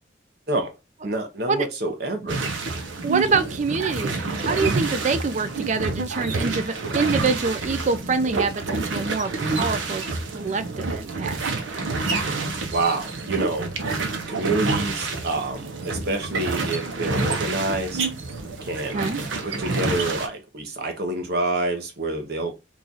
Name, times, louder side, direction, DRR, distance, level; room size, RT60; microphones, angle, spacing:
voice 1, 1.0-2.4 12.7-13.7 14.3-18.0 18.6-19.1 19.4-22.5, right 2 dB, 55° right, 0.9 m, -27 dB
sound 1, 2.3-20.3, right 3 dB, 90° right, 0.8 m, -28 dB
voice 2, 3.0-11.4 18.9-19.2, right 4 dB, 40° right, 0.4 m, -25 dB
3.1 x 2.4 x 3.9 m
head